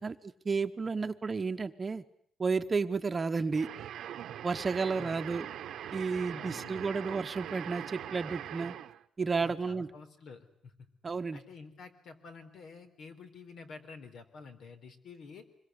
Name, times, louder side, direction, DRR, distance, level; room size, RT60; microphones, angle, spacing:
voice 1, 0.0-2.0 2.4-3.7 4.4-5.5 5.9-8.7 9.2-9.9 11.0-11.4, right 4 dB, 25° right, 9 dB, 1.1 m, -32 dB
sound 1, 3.5-9.0, right 10 dB, 80° right, 1.1 m, -42 dB
voice 2, 6.3-6.9 9.4-10.9 11.3-15.4, left 4 dB, 65° left, 8 dB, 4.0 m, -50 dB
25.5 x 22.5 x 9.7 m, 0.65 s
cardioid pair, 145°, 0 cm